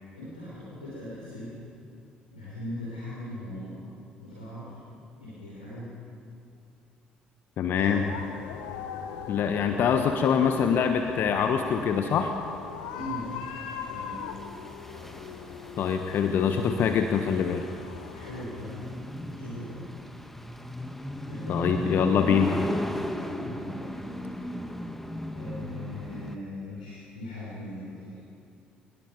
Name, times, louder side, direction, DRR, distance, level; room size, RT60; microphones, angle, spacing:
voice 1, 0.1-1.5 2.3-3.8 4.2-4.8 5.1-5.9 7.8-8.0 12.9-13.4 13.9-14.2 14.9-15.1 18.1-19.0 19.3-19.9 21.3-21.6 23.3-24.0 25.3-28.2, left 1 dB, 85° left, -8 dB, 5.1 m, -40 dB
voice 2, 7.6-8.0 9.3-12.3 15.8-17.6 21.5-22.5, left 7 dB, 55° left, 6 dB, 1.2 m, -24 dB
sound 1, 7.8-18.4, left 7 dB, 70° left, 1.5 m, -41 dB
sound 2, 10.6-26.4, equal, 5° left, 1.8 m, -37 dB
27.0 x 21.0 x 5.3 m, 2.5 s
figure-of-eight pair, 50°, 4 cm